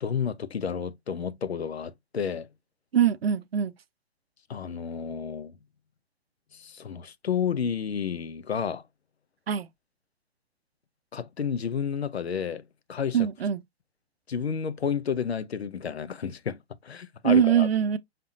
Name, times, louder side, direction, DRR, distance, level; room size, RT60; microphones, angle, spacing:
voice 1, 0.0-2.5 4.5-5.6 6.5-8.8 11.1-12.6 12.9-13.3 14.3-17.7, left 7 dB, 70° left, 0.7 m, -31 dB
voice 2, 2.9-3.7 9.5-9.7 13.1-13.6 17.2-18.0, right 8 dB, 65° right, 0.6 m, -22 dB
5.8 x 3.3 x 2.6 m
figure-of-eight pair, 120°, 33 cm